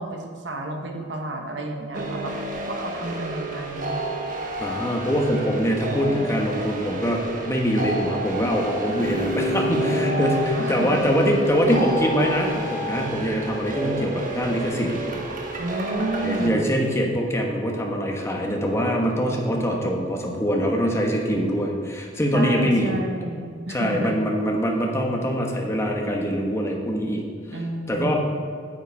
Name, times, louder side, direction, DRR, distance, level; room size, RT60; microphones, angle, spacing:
voice 1, 0.0-4.0 9.8-11.0 15.6-16.7 22.3-24.2 27.5-28.1, right 1 dB, 75° right, 3 dB, 1.2 m, -31 dB
sound 1, 1.9-16.5, right 1 dB, 45° right, 1.1 m, -29 dB
voice 2, 4.6-14.9 16.2-22.9 23.7-27.2 27.9-28.1, equal, 15° left, 0 dB, 1.2 m, -23 dB
8.8 x 7.7 x 4.7 m, 2.3 s
head